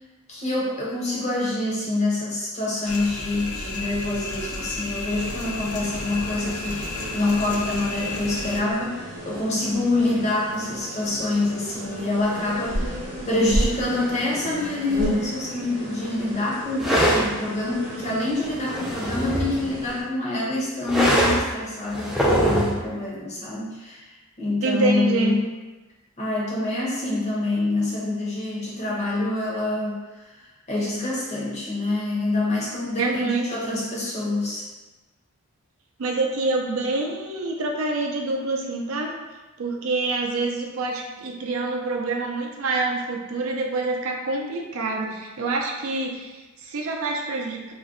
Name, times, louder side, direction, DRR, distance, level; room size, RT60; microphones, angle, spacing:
voice 1, 0.3-25.4 26.2-34.7, left 2 dB, 30° left, -6 dB, 0.7 m, -26 dB
sound 1, 2.9-8.6, left 3 dB, 75° left, 0.4 m, -32 dB
sound 2, 5.1-20.0, equal, 35° right, 0.8 m, -33 dB
sound 3, 16.8-17.3 18.5-19.6 20.9-21.5 21.9-22.8, right 1 dB, ahead, 0.3 m, -22 dB
voice 2, 24.6-25.4 33.0-33.5 36.0-39.1 39.6-47.7, right 3 dB, 70° right, 1 dB, 0.5 m, -26 dB
2.5 x 2.2 x 3.6 m, 1.2 s
head